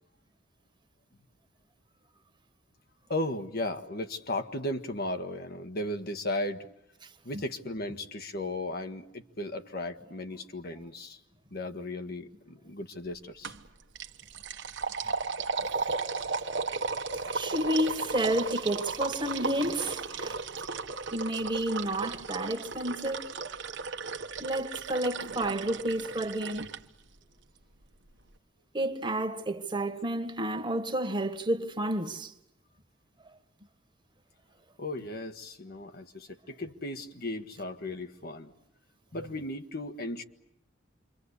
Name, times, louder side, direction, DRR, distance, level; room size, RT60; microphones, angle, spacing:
voice 1, 3.1-6.7 7.2-11.2 11.5-13.5 18.5-18.6 34.8-38.5 39.1-40.2, left 1 dB, 55° left, 1.6 m, -36 dB
sound 1, 13.4-13.7 14.0-26.8, right 4 dB, 65° right, 1.3 m, -35 dB
voice 2, 17.3-20.4 21.1-23.3 24.4-26.7 28.7-32.3, right 1 dB, 25° right, 1.7 m, -30 dB
28.0 x 24.0 x 8.3 m
head